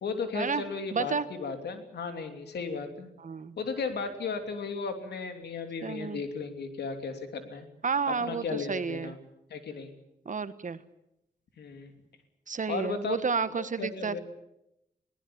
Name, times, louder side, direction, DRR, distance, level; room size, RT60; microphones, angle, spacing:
voice 1, 0.0-3.1 3.6-7.7 8.2-9.2 9.5-9.9 11.6-11.9 12.7-13.2 13.5-14.2, left 5 dB, 80° left, 6 dB, 3.1 m, -35 dB
voice 2, 0.9-1.3 3.2-3.6 5.8-6.2 7.8-9.1 10.2-10.8 12.5-14.2, right 5 dB, 50° right, 13 dB, 1.4 m, -31 dB
21.0 x 18.5 x 8.7 m, 0.84 s
cardioid pair, 55°, 17 cm